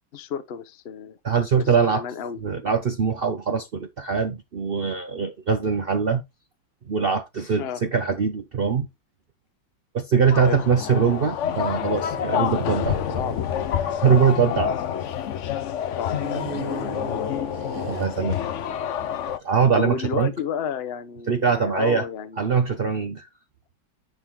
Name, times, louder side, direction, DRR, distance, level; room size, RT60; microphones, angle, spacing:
voice 1, 0.1-1.2 1.6-2.4 7.6-7.8 10.4-10.6 13.1-13.5 14.4-14.8 15.9-17.3 19.7-22.4, left 7 dB, 50° left, 0.7 m, -32 dB
voice 2, 1.2-2.0 2.4-6.2 6.9-8.9 9.9-13.0 14.0-14.7 17.9-18.4 19.4-20.3 21.3-22.1 22.4-23.3, right 6 dB, 70° right, 0.5 m, -22 dB
sound 1, 10.3-19.4, left 9 dB, 85° left, 0.6 m, -28 dB
sound 2, 10.7-15.4 16.1-19.5, right 6 dB, 40° right, 0.9 m, -40 dB
10.0 x 3.8 x 4.5 m
omnidirectional pair, 2.2 m